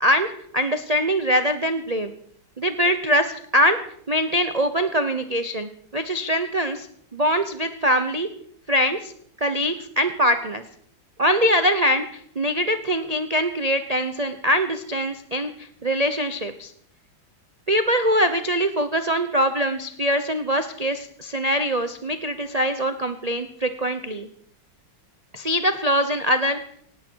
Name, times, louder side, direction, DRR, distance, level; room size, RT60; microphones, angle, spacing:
voice 1, 0.0-2.1 2.6-3.8 4.1-6.9 7.1-8.3 8.7-9.1 9.4-10.6 11.2-16.7 17.7-24.3 25.3-26.6, equal, 65° right, 8 dB, 0.3 m, -23 dB
18.5 x 17.0 x 4.6 m, 0.64 s
omnidirectional pair, 2.2 m